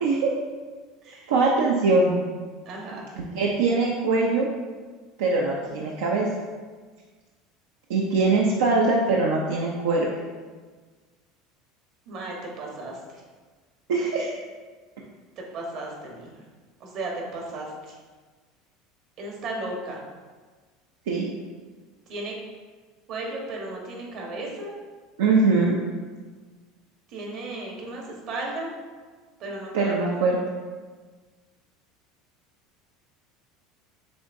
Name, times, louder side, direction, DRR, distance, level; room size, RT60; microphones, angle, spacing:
voice 1, 0.0-0.3 1.3-2.2 3.2-4.5 5.2-6.3 7.9-10.1 13.9-14.4 21.1-21.3 25.2-25.8 29.7-30.4, right 3 dB, 85° right, -2 dB, 0.5 m, -22 dB
voice 2, 2.6-3.1 12.1-13.2 15.4-16.4 16.8-18.0 19.2-20.0 22.1-22.3 23.1-24.8 27.1-28.7 29.4-30.2, right 2 dB, 55° right, -1 dB, 1.1 m, -35 dB
6.8 x 2.5 x 2.6 m, 1.4 s
supercardioid pair, 105°, 0 cm